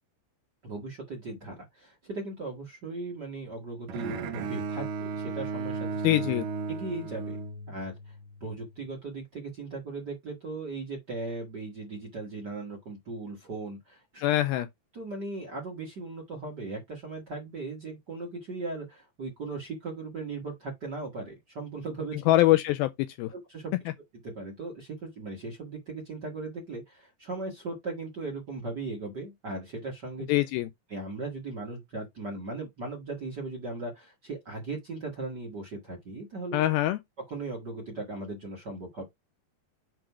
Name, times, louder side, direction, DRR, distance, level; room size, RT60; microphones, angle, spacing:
voice 1, 0.6-6.0 6.7-7.4 7.7-8.2 8.4-14.2 14.9-22.2 23.5-23.7 24.2-30.3 30.9-36.6 37.3-39.0, right 3 dB, 35° right, 1.7 m, -38 dB
Bowed string instrument, 3.9-8.1, right 4 dB, 65° right, 2.4 m, -34 dB
voice 2, 6.0-6.4 14.2-14.7 22.3-23.3 30.3-30.7 36.5-37.0, left 16 dB, 80° left, 2.2 m, -24 dB
7.8 x 3.3 x 4.7 m
omnidirectional pair, 4.6 m